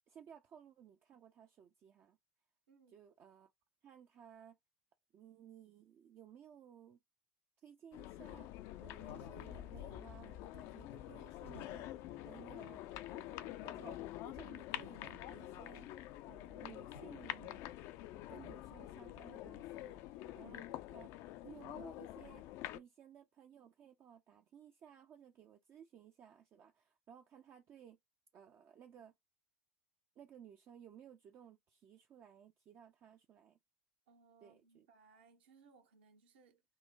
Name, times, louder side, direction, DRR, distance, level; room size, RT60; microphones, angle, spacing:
voice 1, 0.1-2.2 2.9-3.5 3.8-4.6 5.1-7.0 7.6-8.5 8.8-11.9 12.2-12.8 13.1-15.9 16.3-17.6 18.3-21.1 21.4-22.4 22.7-28.0 28.3-29.1 30.2-33.6 34.4-34.9, right 8 dB, 35° right, 0.4 m, -58 dB
voice 2, 2.7-3.0 34.1-36.6, right 5 dB, 65° right, 0.9 m, -66 dB
sound 1, 7.9-22.8, left 14 dB, 50° left, 0.3 m, -47 dB
Wind / Fire, 8.9-18.3, left 1 dB, 85° left, 0.9 m, -62 dB
3.7 x 2.1 x 2.6 m
figure-of-eight pair, 75°, 6 cm